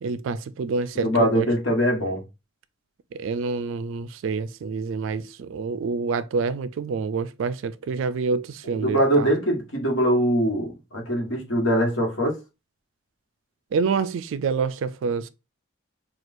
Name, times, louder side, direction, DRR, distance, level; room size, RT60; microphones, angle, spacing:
voice 1, 0.0-1.5 3.1-9.3 13.7-15.3, right 4 dB, 60° right, 0.3 m, -27 dB
voice 2, 0.9-2.2 8.7-12.4, equal, 60° left, 1.3 m, -22 dB
6.0 x 2.4 x 2.5 m
head